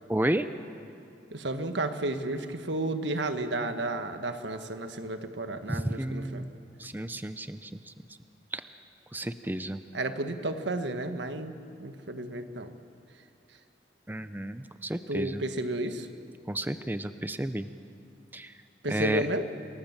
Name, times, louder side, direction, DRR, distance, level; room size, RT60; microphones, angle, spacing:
voice 1, 0.1-0.5 5.7-6.5 6.8-7.7 8.5-8.6 9.1-9.8 14.1-15.4 16.5-17.7 18.3-18.5 18.9-19.3, right 1 dB, 10° right, 11 dB, 0.6 m, -31 dB
voice 2, 1.3-6.5 9.9-11.5 11.8-12.8 15.1-16.1 18.8-19.5, right 2 dB, 90° right, 8 dB, 1.4 m, -32 dB
28.0 x 19.0 x 7.4 m, 2.5 s
head